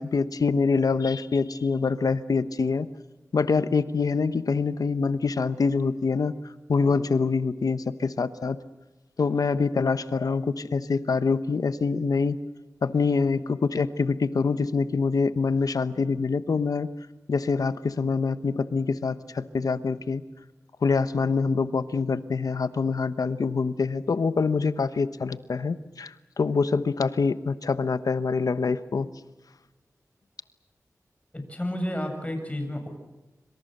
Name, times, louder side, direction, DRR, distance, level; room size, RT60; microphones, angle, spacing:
voice 1, 0.0-2.9 3.3-6.3 6.7-8.6 9.2-12.4 12.8-16.9 17.3-20.2 20.8-29.1, left 4 dB, 85° left, 13 dB, 1.1 m, -25 dB
voice 2, 31.3-32.9, left 1 dB, 20° left, 4 dB, 7.4 m, -31 dB
26.5 x 26.0 x 6.7 m, 1.1 s
wide cardioid pair, 55°, 6 cm